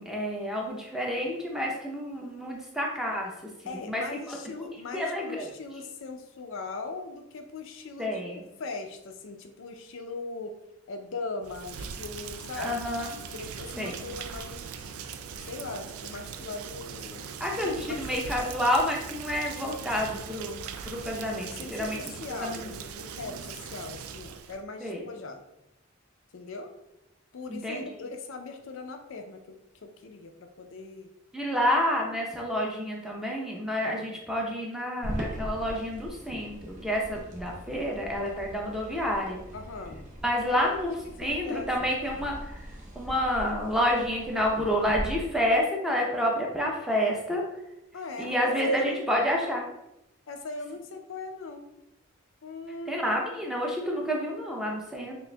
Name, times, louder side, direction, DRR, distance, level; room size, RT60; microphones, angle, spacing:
voice 1, 0.0-3.3 3.6-4.4 4.9-5.5 8.0-8.4 12.6-13.1 13.8-14.0 17.4-22.0 22.4-22.7 23.1-23.4 24.8-25.0 27.5-27.8 31.3-39.4 40.2-42.6 42.9-47.4 48.2-49.7 52.9-55.2, equal, ahead, -2 dB, 0.6 m, -29 dB
voice 2, 3.6-8.2 8.6-10.6 10.9-12.8 13.3-15.0 15.4-18.6 21.1-25.4 26.3-26.7 27.3-30.3 30.6-31.1 39.5-40.1 40.5-40.7 41.2-41.7 47.9-49.1 50.3-51.7 52.4-53.0, left 3 dB, 65° left, 5 dB, 0.4 m, -40 dB
Rain, 11.4-24.6, right 6 dB, 90° right, 0.3 m, -40 dB
sound 1, 35.0-45.1, right 1 dB, 35° right, 0.8 m, -40 dB
6.2 x 2.5 x 2.2 m, 0.86 s
head